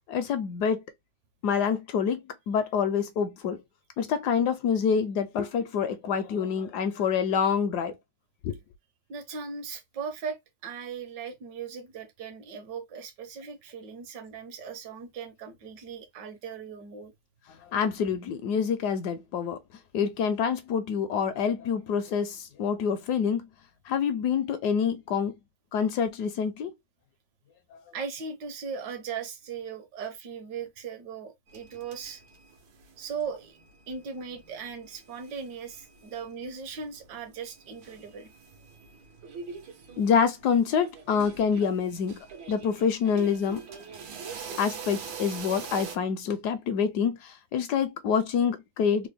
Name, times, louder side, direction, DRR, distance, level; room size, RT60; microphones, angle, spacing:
voice 1, 0.1-0.8 1.4-3.6 4.0-8.0 8.4-8.6 17.5-19.6 19.9-23.5 23.9-25.3 25.7-26.7 27.7-27.8 40.0-43.6 44.6-49.1, left 6 dB, 75° left, 1.0 m, -27 dB
voice 2, 9.1-17.1 27.9-32.2 33.0-33.6 33.9-38.3, right 6 dB, 70° right, 1.5 m, -38 dB
sound 1, 31.5-32.9 33.1-36.4 36.7-36.8 37.3-46.0, right 6 dB, 85° right, 1.7 m, -44 dB
3.7 x 2.2 x 3.3 m
omnidirectional pair, 2.0 m